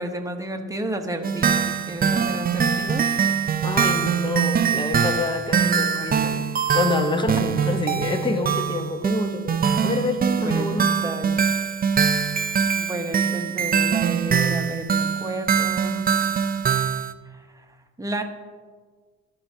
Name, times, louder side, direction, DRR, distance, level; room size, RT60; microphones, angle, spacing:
voice 1, 0.0-3.1 6.3-6.4 7.3-7.4 10.3-11.5 12.8-16.1 17.3-17.6 18.0-18.2, right 1 dB, 10° right, 4 dB, 1.0 m, -32 dB
sound 1, 1.2-17.1, right 7 dB, 30° right, 0.5 m, -23 dB
voice 2, 3.6-6.4 6.7-10.9, left 3 dB, 15° left, 6 dB, 0.9 m, -27 dB
14.5 x 5.7 x 2.8 m, 1.5 s
cardioid pair, 90°, 32 cm